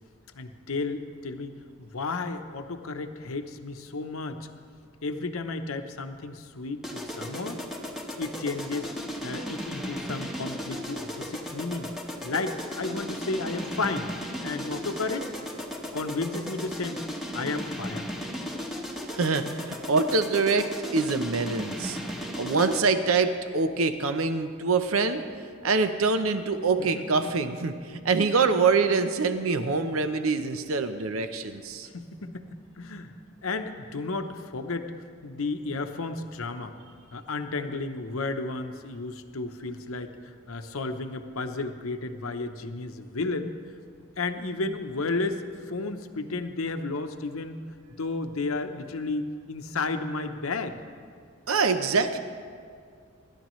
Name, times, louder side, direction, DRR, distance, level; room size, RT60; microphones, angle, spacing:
voice 1, 0.3-1.5 1.8-4.5 5.0-7.6 8.2-8.9 9.2-11.9 12.2-14.1 14.4-15.3 15.9-17.0 17.3-18.1 26.8-27.3 27.9-28.0 31.9-33.1 33.4-34.9 35.2-36.8 37.1-43.6 44.2-47.6 48.0-50.7, left 3 dB, 75° left, 7 dB, 0.8 m, -33 dB
sound 1, 6.8-23.0, equal, ahead, 1.1 m, -36 dB
voice 2, 19.1-22.0 22.4-25.2 25.6-27.7 28.0-31.9 51.5-52.2, right 4 dB, 75° right, 9 dB, 0.7 m, -25 dB
26.0 x 11.5 x 3.1 m, 2.1 s
head